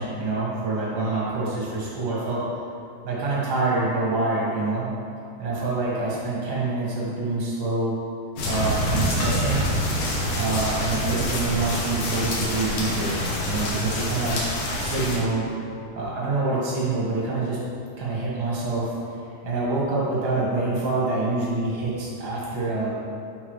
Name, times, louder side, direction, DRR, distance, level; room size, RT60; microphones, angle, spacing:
voice 1, 0.0-2.4 3.0-4.9 5.4-7.9 8.4-9.7 10.3-13.2 13.4-14.4 14.8-15.5 15.9-17.6 18.0-19.0 19.4-22.9, right 3 dB, 45° right, -7 dB, 1.3 m, -26 dB
sound 1, 8.4-15.2, left 1 dB, 65° left, 2.1 m, -26 dB
11.0 x 4.2 x 3.2 m, 2.5 s
omnidirectional pair, 4.2 m